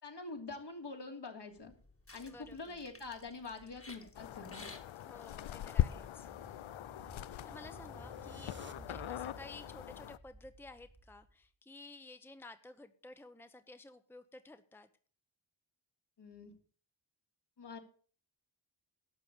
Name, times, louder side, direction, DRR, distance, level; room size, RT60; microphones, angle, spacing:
voice 1, 0.0-1.7 2.1-4.7 16.2-16.5 17.6-17.8, left 3 dB, 60° left, 3 dB, 3.0 m, -45 dB
sound 1, 1.6-6.6, left 2 dB, 30° left, 2.0 m, -56 dB
voice 2, 2.2-2.8 5.0-6.3 7.4-14.9, left 2 dB, 5° left, 10 dB, 0.9 m, -53 dB
sound 2, 4.1-10.2, left 13 dB, 85° left, 0.6 m, -40 dB
sound 3, 5.1-11.4, right 3 dB, 25° right, 1.4 m, -55 dB
12.0 x 7.2 x 8.0 m, 0.43 s
wide cardioid pair, 85°, 45 cm